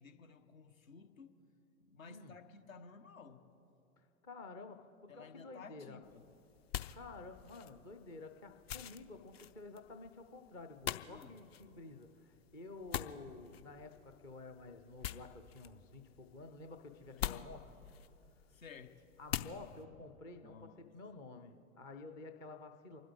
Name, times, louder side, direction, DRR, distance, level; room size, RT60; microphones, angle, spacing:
voice 1, 0.0-1.3 1.8-3.4 5.1-6.2 11.1-11.3 17.1-17.2 18.5-19.0 20.4-20.9, left 5 dB, 70° left, 7 dB, 1.3 m, -55 dB
voice 2, 2.0-2.4 4.2-6.0 6.9-17.7 19.2-23.0, left 3 dB, 10° left, 6 dB, 0.3 m, -51 dB
sound 1, 6.0-19.8, left 10 dB, 45° left, 0.7 m, -46 dB
29.0 x 12.0 x 3.6 m, 2.9 s
figure-of-eight pair, 100°, 42 cm